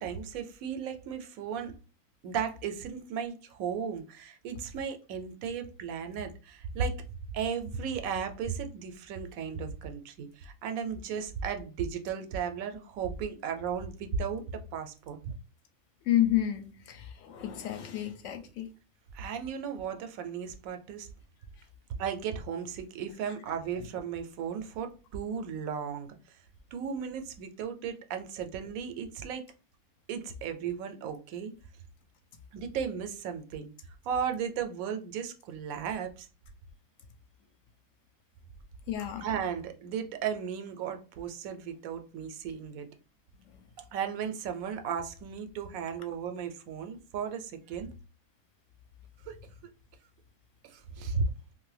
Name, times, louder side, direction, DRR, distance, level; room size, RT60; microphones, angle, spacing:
voice 1, 0.0-1.7 2.2-7.0 7.3-15.3 19.1-21.1 22.0-26.1 26.7-29.4 30.1-31.5 32.5-33.7 34.0-36.3 39.2-42.9 43.8-47.9 49.2-49.4 50.6-51.2, right 7 dB, 90° right, 1.0 m, -35 dB
voice 2, 16.1-18.7 38.9-39.3, left 12 dB, 70° left, 0.9 m, -30 dB
2.6 x 2.5 x 3.2 m
omnidirectional pair, 1.4 m